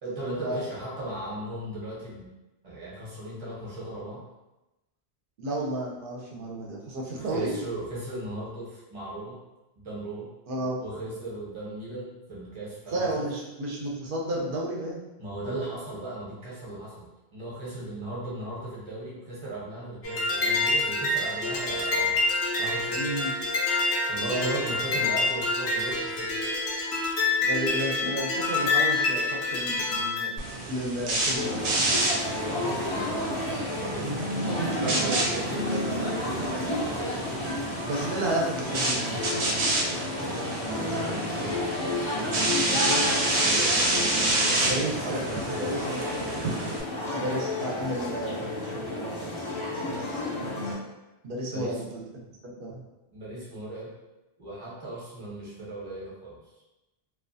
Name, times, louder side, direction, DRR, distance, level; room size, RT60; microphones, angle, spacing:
voice 1, 0.0-2.3 2.6-4.2 7.1-9.4 9.8-10.3 10.8-13.3 15.2-22.2 22.6-23.0 24.1-26.4 32.4-37.3 40.2-41.9 43.1-46.5 51.5-51.8 52.5-52.6 53.1-53.9 54.4-56.4, right 1 dB, 30° right, -6 dB, 0.8 m, -37 dB
voice 2, 5.4-7.5 10.5-10.8 12.9-15.0 22.9-23.3 24.3-24.5 27.4-30.3 30.7-31.7 34.0-35.1 36.4-36.8 37.9-39.2 42.7-43.1 44.6-45.2 45.6-46.0 47.1-49.3 49.8-50.0 51.2-52.1 52.4-52.8, right 1 dB, 60° right, -2 dB, 0.8 m, -32 dB
sound 1, 20.0-30.3, left 3 dB, 85° left, 0.9 m, -27 dB
sound 2, 30.4-46.8, right 2 dB, 90° right, 0.8 m, -29 dB
sound 3, 31.3-50.7, left 1 dB, 40° left, 0.4 m, -32 dB
2.3 x 2.2 x 2.6 m, 1.0 s
omnidirectional pair, 1.1 m